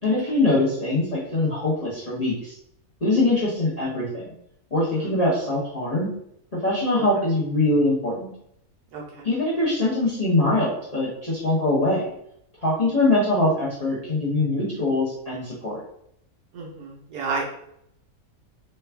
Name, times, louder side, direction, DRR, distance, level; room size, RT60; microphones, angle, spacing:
voice 1, 0.0-2.6 3.0-4.3 4.7-6.1 6.5-8.3 9.2-12.1 12.6-15.8, left 2 dB, 35° left, -7 dB, 0.6 m, -23 dB
voice 2, 8.9-9.3 16.5-17.4, right 4 dB, 85° right, -1 dB, 1.4 m, -31 dB
3.3 x 2.3 x 3.3 m, 0.73 s
omnidirectional pair, 1.6 m